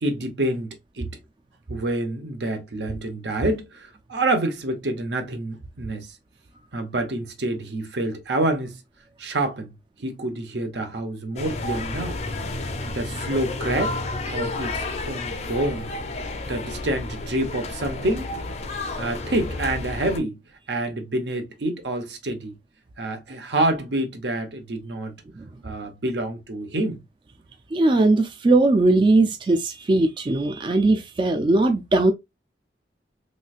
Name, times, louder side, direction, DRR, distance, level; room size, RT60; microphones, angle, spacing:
voice 1, 0.0-1.2 1.7-6.2 6.7-8.8 9.2-9.7 10.0-12.2 12.9-14.0 14.3-15.9 16.5-18.3 19.0-20.4 20.7-22.6 23.0-25.1 25.6-27.0, right 1 dB, 80° right, 0.9 m, -27 dB
sound 1, 11.4-20.2, left 2 dB, 40° left, 0.5 m, -31 dB
voice 2, 27.7-32.1, right 2 dB, 30° right, 0.3 m, -19 dB
3.1 x 3.1 x 2.4 m
head